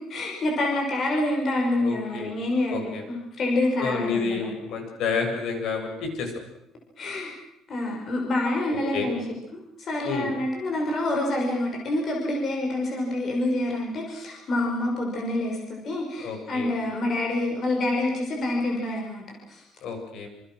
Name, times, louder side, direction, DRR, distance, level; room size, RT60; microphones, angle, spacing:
voice 1, 0.1-4.5 7.0-7.3 7.7-9.3 9.5-19.6, left 1 dB, 40° left, 0 dB, 6.2 m, -27 dB
voice 2, 1.8-2.4 2.7-3.0 3.8-6.3 8.7-9.1 10.0-10.3 16.2-16.7 19.8-20.3, left 5 dB, 65° left, 4 dB, 7.6 m, -30 dB
28.5 x 28.0 x 6.4 m, 0.80 s
cardioid pair, 160°, 0 cm